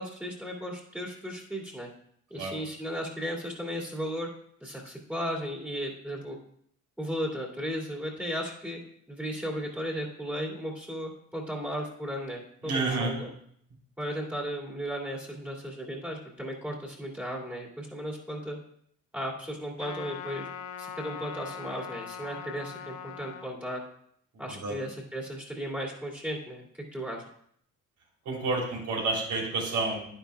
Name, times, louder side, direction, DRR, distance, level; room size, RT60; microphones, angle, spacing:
voice 1, 0.0-1.9 2.3-4.3 4.6-6.4 7.0-8.8 9.1-13.3 14.0-18.6 19.1-20.5 20.8-23.8 24.4-26.7 26.9-27.2, equal, 5° right, -5 dB, 2.4 m, -35 dB
voice 2, 12.6-13.1 24.5-24.8 28.2-30.1, right 3 dB, 75° right, -2 dB, 3.4 m, -29 dB
Trumpet, 19.8-23.5, left 8 dB, 75° left, 0.7 m, -41 dB
10.0 x 10.0 x 2.3 m, 0.67 s
cardioid pair, 90°, 30 cm